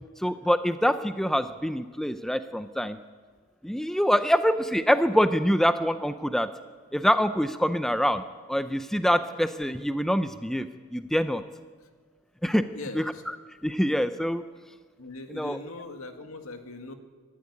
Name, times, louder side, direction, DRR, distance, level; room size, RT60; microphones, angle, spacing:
voice 1, 0.2-3.0 3.6-6.5 6.9-8.2 8.5-11.4 12.4-12.6 13.0-13.1 13.6-14.4 15.4-15.6, equal, ahead, 10 dB, 0.5 m, -25 dB
voice 2, 12.7-13.2 15.0-16.9, left 2 dB, 75° left, 6 dB, 2.1 m, -40 dB
24.5 x 12.0 x 9.7 m, 1.5 s
head